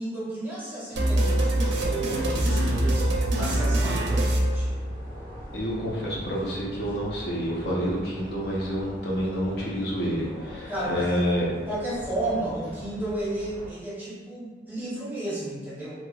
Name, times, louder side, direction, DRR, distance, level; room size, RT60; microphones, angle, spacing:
voice 1, 0.0-3.1 3.4-4.8 10.7-11.2 11.7-15.9, right 1 dB, 10° right, -9 dB, 0.8 m, -33 dB
sound 1, 0.9-13.7, equal, 25° left, 1.3 m, -41 dB
sound 2, 1.0-5.3, right 1 dB, 85° right, 0.5 m, -24 dB
voice 2, 5.5-11.5, equal, 70° left, -5 dB, 0.7 m, -28 dB
3.1 x 2.8 x 2.3 m, 1.4 s
head